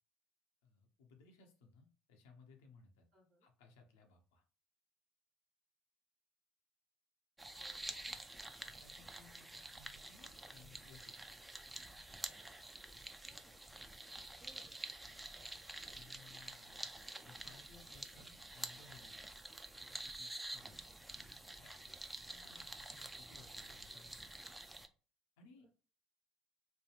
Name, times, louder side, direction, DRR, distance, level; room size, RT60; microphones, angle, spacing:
voice 1, 0.6-3.1 3.4-4.4 8.6-11.4 15.9-16.9 17.2-19.2 19.9-20.8 21.1-24.1 25.4-25.7, left 4 dB, 70° left, 3 dB, 0.7 m, -63 dB
voice 2, 3.1-3.5 7.6-8.2 13.2-13.7 14.3-14.8 15.3-15.4 20.9-21.1 23.1-24.4 25.6-25.7, right 1 dB, 55° right, -3 dB, 1.2 m, -69 dB
sound 1, 7.4-24.9, right 2 dB, 10° right, 0.5 m, -49 dB
3.2 x 2.2 x 3.0 m, 0.37 s
figure-of-eight pair, 60°, 0 cm